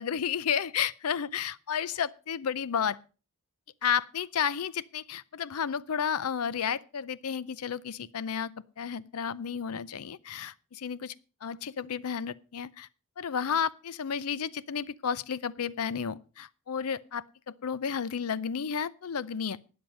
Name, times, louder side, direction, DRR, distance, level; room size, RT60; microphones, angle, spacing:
voice 1, 0.0-3.0 3.8-11.1 11.4-12.9 13.2-19.6, left 7 dB, 75° left, 0.6 m, -32 dB
12.5 x 9.0 x 5.3 m
head